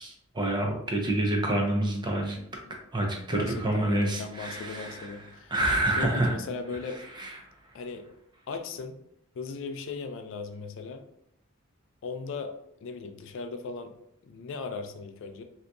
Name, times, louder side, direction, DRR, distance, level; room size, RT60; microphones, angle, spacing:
voice 1, 0.0-2.4 2.9-6.3 6.9-7.4, right 1 dB, 20° right, 1 dB, 0.5 m, -28 dB
voice 2, 3.3-5.5 6.0-7.0 7.7-8.1 8.5-9.0 9.4-11.0 12.0-12.5 12.8-13.9 14.2-15.4, left 4 dB, 60° left, 7 dB, 0.3 m, -37 dB
3.7 x 2.7 x 2.3 m, 0.74 s
head